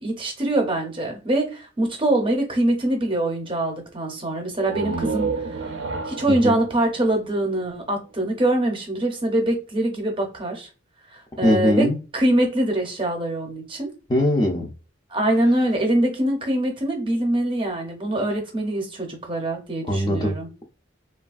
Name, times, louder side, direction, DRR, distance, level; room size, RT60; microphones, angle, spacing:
voice 1, 0.0-5.3 6.1-10.7 11.1-11.9 12.1-13.9 15.1-20.5, right 1 dB, 25° right, 2 dB, 0.6 m, -23 dB
sound 1, 4.5-8.2, right 4 dB, 70° right, 0.4 m, -31 dB
voice 2, 11.4-12.0 14.1-14.7 19.8-20.3, left 1 dB, 20° left, 1 dB, 0.4 m, -21 dB
3.1 x 2.3 x 2.4 m, 0.33 s
head